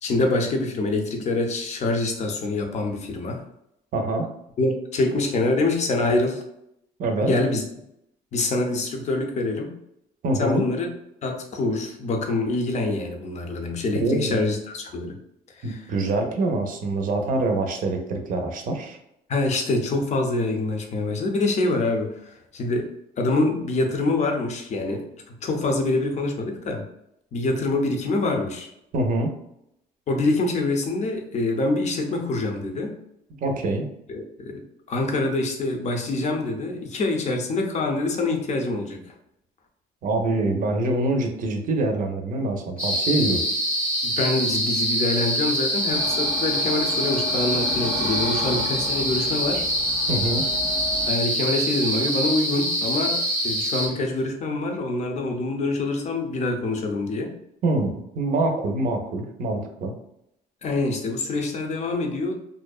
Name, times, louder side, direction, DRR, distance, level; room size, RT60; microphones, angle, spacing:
voice 1, 0.0-3.4 4.6-6.4 7.2-7.6 8.3-9.7 10.4-10.9 11.2-15.1 15.6-15.9 19.3-22.9 23.2-25.1 25.4-26.8 27.3-28.7 30.1-32.9 34.1-34.6 34.9-39.1 44.0-49.6 51.1-57.3 60.6-62.3, left 2 dB, 45° left, 3 dB, 0.6 m, -25 dB
voice 2, 3.9-4.3 7.0-7.3 10.2-10.6 14.0-14.4 15.6-19.0 28.9-29.3 33.4-33.9 40.0-43.4 50.1-50.4 57.6-59.9, right 2 dB, 55° right, 4 dB, 0.5 m, -25 dB
sound 1, 42.8-53.9, equal, 5° left, 0.7 m, -25 dB
sound 2, 45.9-51.1, left 2 dB, 80° left, 0.8 m, -34 dB
2.6 x 2.1 x 2.3 m, 0.78 s
cardioid pair, 110°, 17 cm